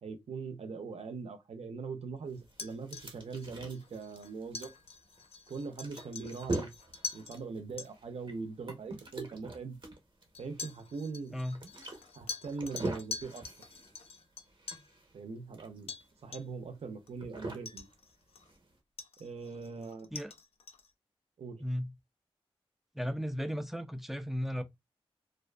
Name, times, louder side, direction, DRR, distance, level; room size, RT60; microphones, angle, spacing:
voice 1, 0.0-4.7 5.5-6.7 7.1-9.8 10.4-11.4 12.1-13.4 15.1-15.9 16.2-17.9 19.2-20.1 21.4-21.6, right 4 dB, 85° right, 0.5 m, -41 dB
sound 1, 2.3-18.8, right 2 dB, 50° right, 0.7 m, -43 dB
sound 2, 2.5-7.4 7.8-7.9 8.9-9.0 10.3-14.9 15.9-16.1 16.3-16.7 17.1-17.2 17.7-18.6 19.0-20.9, left 5 dB, 75° left, 0.4 m, -45 dB
voice 2, 21.6-21.9 22.9-24.6, equal, ahead, 0.3 m, -35 dB
2.4 x 2.4 x 2.2 m
wide cardioid pair, 120°, 10 cm